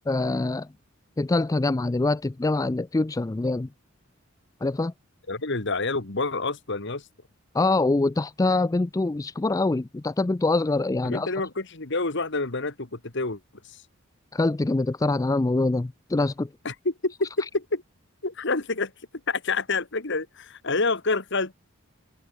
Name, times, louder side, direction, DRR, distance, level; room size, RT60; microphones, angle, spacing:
voice 1, 0.1-0.7 1.2-3.7 4.6-4.9 7.5-11.3 14.3-16.5, left 2 dB, 15° left, 0.3 m, -24 dB
voice 2, 5.3-7.0 11.0-13.4 13.7-13.8 16.7-17.8 18.2-18.9 19.3-21.5, left 3 dB, 60° left, 1.9 m, -28 dB
head